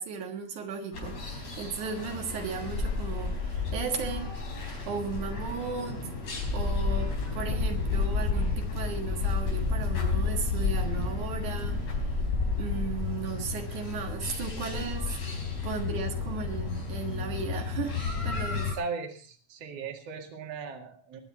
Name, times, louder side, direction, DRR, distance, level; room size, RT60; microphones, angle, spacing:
voice 1, 0.0-4.3 4.9-6.1 6.5-12.1 12.6-15.3 15.6-18.0 18.2-18.7, right 5 dB, 80° right, 3 dB, 3.1 m, -36 dB
sound 1, 0.9-18.7, left 4 dB, 60° left, 5.4 m, -31 dB
voice 2, 18.7-21.2, right 5 dB, 55° right, 4 dB, 3.0 m, -37 dB
21.5 x 9.7 x 4.2 m, 0.40 s
omnidirectional pair, 3.4 m